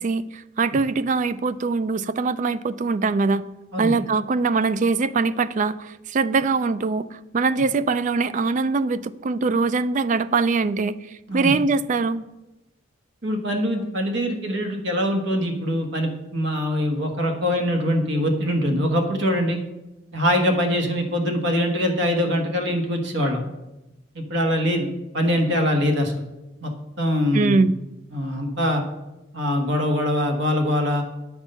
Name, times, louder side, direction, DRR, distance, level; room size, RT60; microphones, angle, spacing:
voice 1, 0.0-3.5 3.8-7.0 7.3-10.9 11.3-12.2 27.3-27.7, right 4 dB, 35° right, 15 dB, 0.3 m, -22 dB
voice 2, 13.2-19.6 20.1-23.4 24.1-24.9 25.1-26.1 26.6-26.7 27.0-27.6 28.1-28.8 29.3-31.0, equal, 60° right, 4 dB, 1.3 m, -23 dB
8.9 x 6.0 x 5.5 m, 0.99 s
head